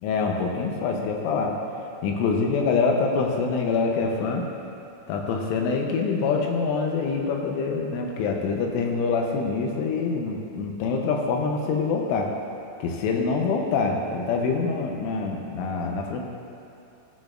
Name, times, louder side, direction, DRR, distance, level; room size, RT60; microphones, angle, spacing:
voice 1, 0.0-1.6 2.0-4.5 5.1-12.3 12.8-16.2, left 4 dB, 80° left, 1 dB, 3.2 m, -25 dB
17.5 x 6.1 x 2.4 m, 2.7 s
omnidirectional pair, 5.8 m